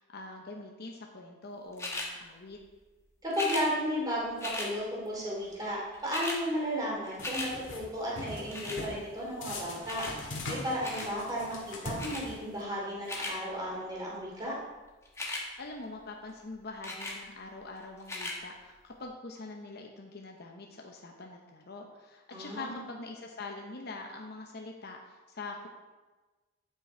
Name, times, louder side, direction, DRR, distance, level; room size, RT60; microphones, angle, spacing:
voice 1, 0.0-2.6 15.6-25.7, left 3 dB, 50° left, 1 dB, 0.9 m, -44 dB
sound 1, 1.8-2.1 3.3-3.7 4.4-4.7 5.6-5.7 5.9-6.4 6.8-7.5 8.5-8.8 9.9-10.2 10.8-11.1 12.0-12.2 12.8-13.4 15.1-15.4 16.8-17.2 18.0-18.4 19.0-19.1, left 2 dB, 15° left, 1.3 m, -36 dB
voice 2, 3.2-14.6 22.3-22.8, equal, 20° right, -5 dB, 2.8 m, -34 dB
sound 2, 7.2-7.8 8.2-9.0 9.4-12.6, left 1 dB, 75° left, 1.9 m, -41 dB
10.0 x 5.9 x 4.4 m, 1.2 s
head